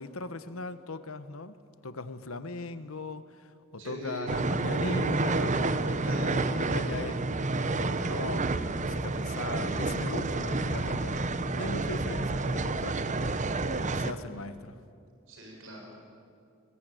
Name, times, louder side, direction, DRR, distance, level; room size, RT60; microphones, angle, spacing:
voice 1, 0.0-1.6 1.8-7.2 7.6-14.8, left 3 dB, 75° left, 12 dB, 1.2 m, -39 dB
voice 2, 3.8-4.3 6.0-7.1 15.3-16.0, right 1 dB, 65° right, -1 dB, 6.5 m, -41 dB
sound 1, 4.3-14.1, right 3 dB, 35° right, 0.9 m, -29 dB
sound 2, 9.5-13.1, left 1 dB, 30° left, 1.1 m, -45 dB
21.5 x 21.0 x 9.3 m, 2.4 s
head